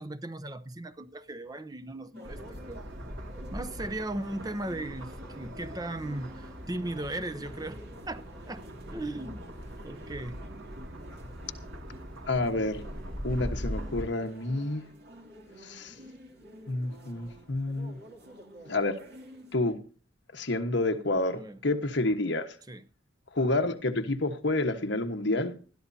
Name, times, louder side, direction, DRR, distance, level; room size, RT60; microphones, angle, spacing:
voice 1, 0.0-2.8 3.5-10.4 21.3-21.6 22.7-22.8, right 1 dB, 20° right, 0.6 m, -37 dB
sound 1, 2.1-19.6, right 1 dB, 50° right, 2.8 m, -51 dB
sound 2, 2.2-14.0, equal, 75° right, 2.5 m, -41 dB
voice 2, 12.3-12.8 13.2-14.9 15.6-15.9 16.7-18.0 18.7-19.0 19.5-19.8 20.3-22.5 23.3-25.5, left 2 dB, 65° left, 1.3 m, -29 dB
20.0 x 13.5 x 2.8 m
head